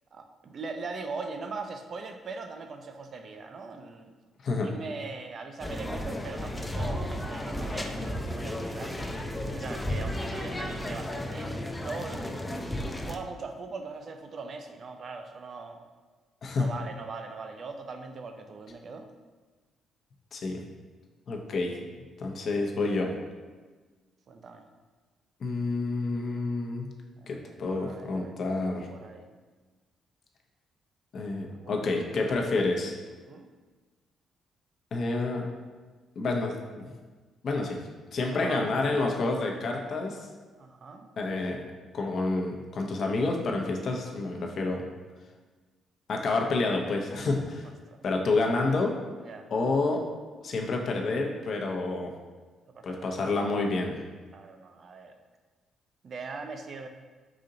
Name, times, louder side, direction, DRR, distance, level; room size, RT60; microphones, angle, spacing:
voice 1, 0.1-4.1 4.6-9.1 9.5-12.7 13.0-15.8 16.6-19.1 24.3-24.7 27.2-29.3 31.5-32.1 33.3-33.5 38.2-39.0 40.6-41.1 47.9-48.0 49.2-49.5 52.7-53.3 54.3-55.2 56.0-56.9, right 4 dB, 50° right, 6 dB, 0.5 m, -41 dB
sound 1, 5.6-13.2, left 1 dB, 15° left, 0.4 m, -33 dB
voice 2, 21.3-21.7 22.2-23.1 25.4-26.9 27.3-28.9 31.1-33.0 34.9-35.5 36.2-36.9 37.4-37.8 38.1-40.2 41.2-41.6 41.9-44.8 46.1-47.7 48.0-49.0 49.5-50.0 50.4-52.1 52.8-54.0, left 3 dB, 55° left, 1 dB, 0.7 m, -29 dB
5.0 x 2.7 x 3.8 m, 1.4 s
cardioid pair, 90°, 0 cm